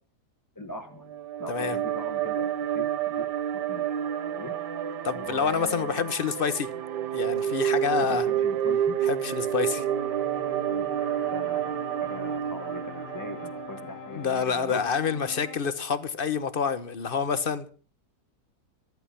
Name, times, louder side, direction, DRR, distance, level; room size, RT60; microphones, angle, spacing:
voice 1, 0.5-2.5 2.7-3.3 3.5-4.0 4.2-4.5 5.1-6.2 8.0-9.0 10.7-14.8, left 2 dB, 10° left, 1.6 m, -40 dB
sound 1, 1.0-14.4, right 10 dB, 80° right, 1.5 m, -29 dB
voice 2, 5.0-6.7 7.1-8.3 9.0-9.8 14.1-17.7, left 6 dB, 35° left, 1.1 m, -28 dB
sound 2, 9.8-15.6, left 9 dB, 70° left, 1.4 m, -44 dB
14.0 x 13.0 x 5.7 m
omnidirectional pair, 1.8 m